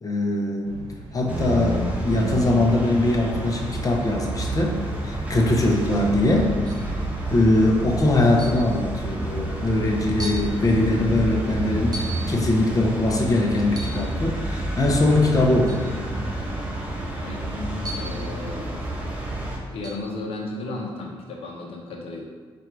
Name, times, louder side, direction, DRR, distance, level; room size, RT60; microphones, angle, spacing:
voice 1, 0.0-0.8 1.1-6.5 7.3-16.0, left 2 dB, 35° left, 0 dB, 0.9 m, -22 dB
sound 1, 0.6-14.4, right 2 dB, 90° right, 0.9 m, -40 dB
sound 2, 1.3-19.6, right 1 dB, 15° right, 1.1 m, -29 dB
sound 3, 6.6-7.0 8.4-8.7 9.5-9.6 10.2-10.5 11.9-12.3 13.7-14.1 15.7-15.9 17.8-18.2 19.8-20.1, right 1 dB, 40° right, 0.7 m, -36 dB
voice 2, 17.9-18.7 19.7-22.2, left 2 dB, 75° left, -1 dB, 0.9 m, -34 dB
4.3 x 2.6 x 4.6 m, 1.5 s
cardioid pair, 65°, 10 cm